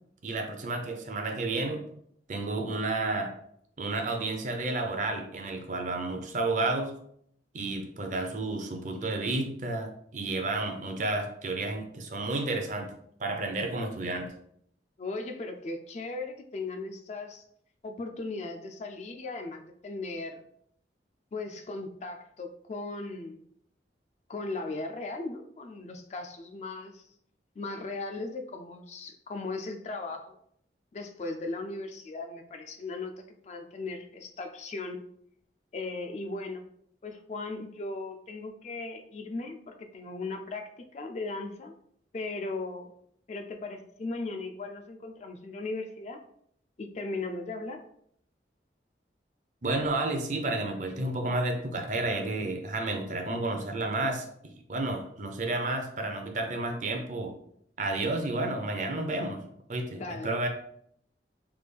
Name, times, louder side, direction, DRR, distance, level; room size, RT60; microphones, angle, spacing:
voice 1, 0.2-1.8 2.3-3.3 3.8-6.9 7.5-12.9 13.2-14.3 49.6-54.3 54.7-57.3 57.8-59.4 59.7-60.5, right 2 dB, 45° right, 3 dB, 0.5 m, -31 dB
voice 2, 15.0-17.4 17.8-20.4 21.3-23.4 24.3-27.0 27.6-30.4 30.9-35.0 35.7-36.6 37.0-41.7 42.1-42.9 43.3-46.2 46.8-47.8 59.9-60.3, left 3 dB, 40° left, 6 dB, 0.3 m, -37 dB
3.4 x 2.3 x 3.3 m, 0.68 s
head